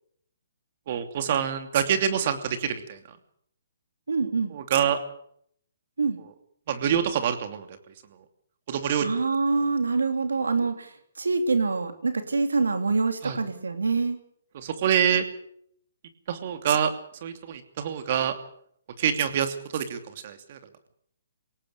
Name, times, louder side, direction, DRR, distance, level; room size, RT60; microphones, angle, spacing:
voice 1, 0.9-3.0 4.5-5.0 6.7-7.7 8.7-9.1 13.2-13.4 14.6-15.2 16.3-16.9 17.2-18.3 19.0-20.0 20.2-20.6, right 8 dB, 50° right, 8 dB, 2.8 m, -26 dB
voice 2, 4.1-4.5 6.0-6.2 9.0-14.2, right 4 dB, 85° right, 8 dB, 3.0 m, -25 dB
22.0 x 18.0 x 6.9 m, 0.67 s
hypercardioid pair, 140°, 0 cm